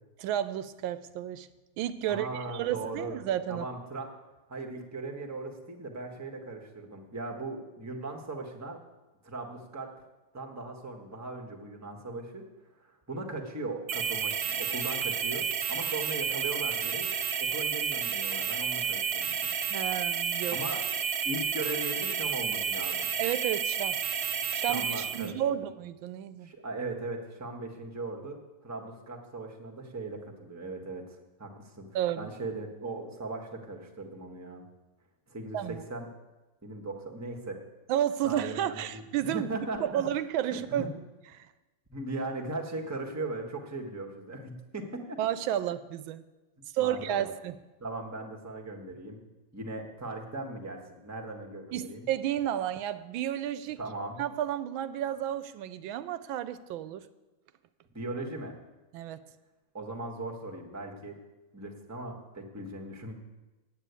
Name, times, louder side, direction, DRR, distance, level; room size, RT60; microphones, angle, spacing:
voice 1, 0.2-1.5 1.8-3.7 19.7-20.6 23.2-24.0 24.5-26.5 31.9-32.3 35.5-35.8 37.9-39.5 39.8-40.9 41.3-41.5 45.2-46.2 46.7-47.6 51.7-53.8 54.2-57.0 58.9-59.2, right 11 dB, 85° right, 13 dB, 1.4 m, -32 dB
voice 2, 2.1-3.2 3.5-4.1 4.5-8.8 9.2-9.9 10.3-12.4 12.8-17.1 17.4-19.4 20.5-21.0 21.2-23.1 24.7-25.3 26.4-31.0 31.4-31.8 32.2-34.6 35.3-36.1 36.6-37.6 38.2-39.0 39.3-40.0 40.5-40.9 41.9-45.2 46.8-47.3 47.8-49.2 49.5-52.0 53.8-54.2 57.9-58.5 59.7-61.2 61.5-63.1, right 2 dB, 10° right, 2 dB, 1.1 m, -38 dB
sound 1, 13.9-25.3, right 7 dB, 60° right, 1.3 m, -31 dB
9.0 x 8.8 x 8.2 m, 1.1 s
omnidirectional pair, 2.1 m